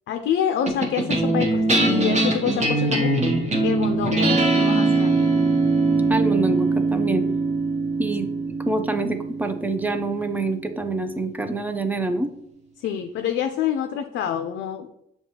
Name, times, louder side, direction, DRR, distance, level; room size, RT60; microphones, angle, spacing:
voice 1, 0.1-3.2 3.6-5.3 12.8-14.9, left 9 dB, 70° left, 6 dB, 0.4 m, -27 dB
sound 1, 0.7-11.3, right 3 dB, 35° right, 1.0 m, -22 dB
voice 2, 6.1-7.2 8.0-12.3, right 2 dB, 10° right, 7 dB, 0.4 m, -26 dB
6.6 x 2.3 x 2.8 m, 0.81 s
cardioid pair, 90°, 20 cm